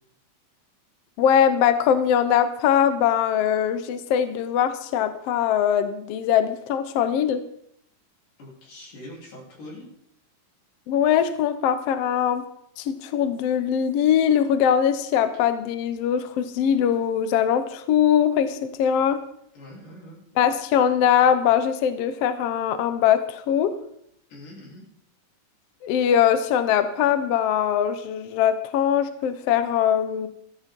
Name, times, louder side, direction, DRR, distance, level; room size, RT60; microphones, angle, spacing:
voice 1, 1.2-7.4 10.9-12.4 12.8-19.2 20.4-23.7 25.8-30.3, left 9 dB, 65° left, 10 dB, 1.6 m, -21 dB
voice 2, 8.4-9.9 19.5-20.4 24.3-24.8, left 1 dB, 90° left, -3 dB, 5.2 m, -43 dB
14.5 x 13.5 x 3.7 m, 0.72 s
omnidirectional pair, 3.7 m